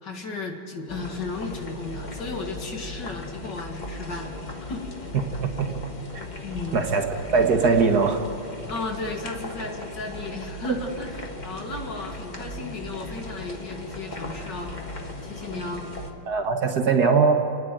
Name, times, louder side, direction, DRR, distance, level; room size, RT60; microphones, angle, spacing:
voice 1, 0.0-4.9 6.4-6.9 7.2-7.3 8.7-14.7 15.2-15.9, left 3 dB, 60° left, 2 dB, 2.5 m, -35 dB
sound 1, 0.9-16.1, left 1 dB, 25° left, 1.5 m, -37 dB
voice 2, 6.7-7.0 7.3-8.3 16.3-17.3, right 5 dB, 55° right, 5 dB, 1.7 m, -20 dB
28.5 x 9.9 x 9.2 m, 2.6 s
omnidirectional pair, 2.2 m